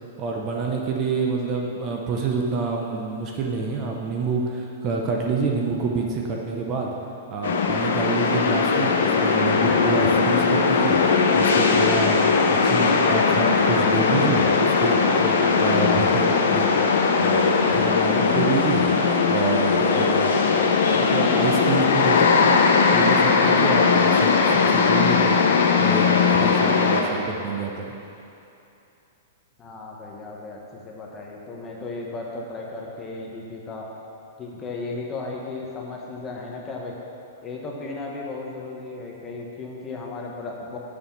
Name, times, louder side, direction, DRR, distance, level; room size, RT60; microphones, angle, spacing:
voice 1, 0.2-6.9 7.3-11.0 11.3-12.2 12.5-16.7 17.2-18.9 19.3-22.6 22.9-25.4 25.8-27.9, right 4 dB, 25° right, 0 dB, 0.8 m, -28 dB
sound 1, 7.4-27.0, left 5 dB, 75° left, 0.9 m, -19 dB
voice 2, 29.6-33.8 34.4-36.9 37.4-40.8, left 3 dB, 15° left, -2 dB, 0.9 m, -35 dB
6.7 x 5.6 x 7.0 m, 2.8 s
hypercardioid pair, 160°, 0 cm